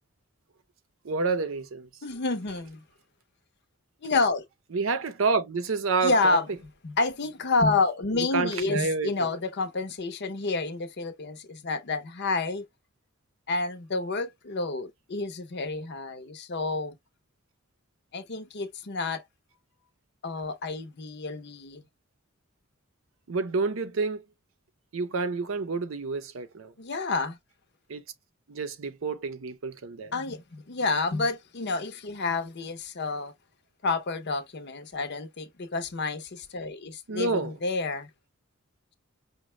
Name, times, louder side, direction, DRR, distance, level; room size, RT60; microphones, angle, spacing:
voice 1, 1.0-1.9 4.7-6.4 8.1-9.3 23.3-24.2 24.9-26.7 27.9-28.0 28.5-30.1 37.1-37.5, right 4 dB, 75° right, 0.6 m, -29 dB
voice 2, 2.0-2.8 4.0-4.4 6.0-6.5 6.8-12.6 13.5-17.0 18.1-19.2 20.2-21.8 26.8-27.4 30.1-33.3 33.8-38.1, left 3 dB, 55° left, 0.7 m, -29 dB
5.1 x 2.2 x 3.1 m
head